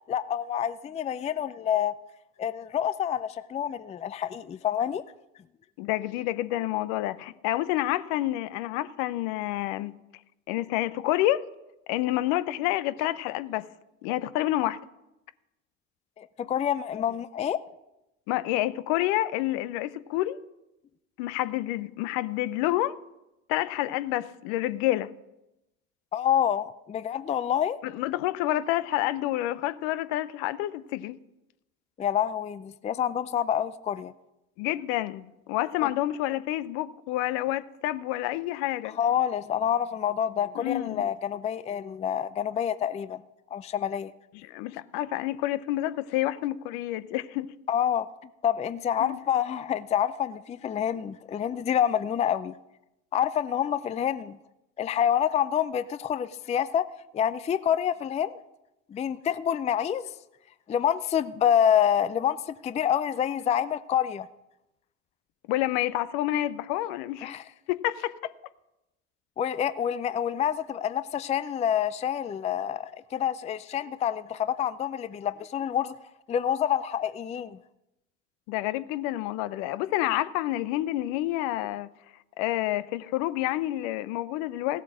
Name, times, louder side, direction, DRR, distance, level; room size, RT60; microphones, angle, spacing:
voice 1, 0.1-1.9 2.4-5.0 16.2-17.6 26.1-27.8 32.0-34.1 35.8-35.9 39.0-43.2 43.5-44.1 47.7-48.1 48.4-52.5 53.1-54.4 54.8-56.9 57.1-58.4 58.9-60.1 60.7-64.3 67.2-67.4 69.4-75.9 76.3-77.6, left 9 dB, 20° left, 0.4 m, -27 dB
voice 2, 5.8-9.9 10.5-11.5 11.9-13.7 14.0-14.8 18.3-20.4 21.2-23.0 23.5-25.1 27.8-31.2 34.6-39.0 40.6-41.1 44.3-47.5 49.0-49.2 65.5-67.4 67.7-68.2 78.5-81.9 82.4-84.8, left 15 dB, 60° left, 0.8 m, -28 dB
16.5 x 8.1 x 6.3 m
hypercardioid pair, 75°, 38 cm